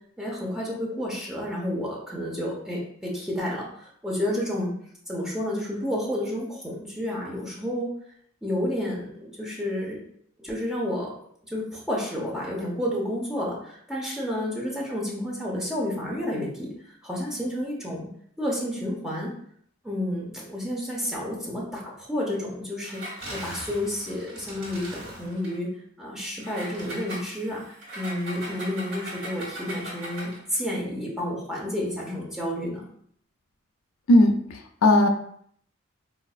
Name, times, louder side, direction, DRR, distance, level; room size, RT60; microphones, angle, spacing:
voice 1, 0.2-4.7 5.1-7.9 8.4-10.0 10.4-11.1 11.5-16.7 17.0-18.1 18.4-19.3 19.8-23.0 23.3-25.7 26.0-32.9, left 1 dB, ahead, -5 dB, 0.8 m, -30 dB
Engine, 22.8-25.6 26.4-30.5, right 1 dB, 60° right, 1.4 m, -39 dB
voice 2, 34.1-35.1, left 1 dB, 85° left, 5 dB, 0.4 m, -18 dB
4.0 x 2.5 x 2.4 m, 0.65 s
head